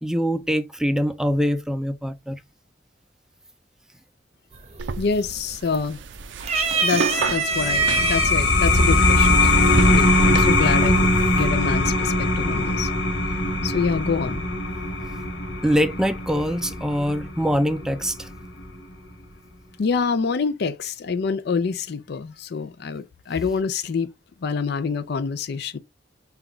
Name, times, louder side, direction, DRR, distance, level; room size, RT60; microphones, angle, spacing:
voice 1, 0.0-2.4 15.6-18.3, equal, 5° right, 0.4 m, -23 dB
sound 1, 4.5-5.0 5.3-6.0 6.4-8.3 9.2-9.3 10.5-11.0, right 4 dB, 35° right, 0.7 m, -24 dB
sound 2, 4.8-10.5, right 4 dB, 85° right, 0.5 m, -32 dB
voice 2, 5.0-6.0 6.8-12.9 13.6-14.4 19.8-24.1 24.4-25.8, left 5 dB, 60° left, 0.4 m, -26 dB
sound 3, 7.5-18.7, left 2 dB, 85° left, 1.4 m, -21 dB
5.7 x 2.3 x 3.6 m
head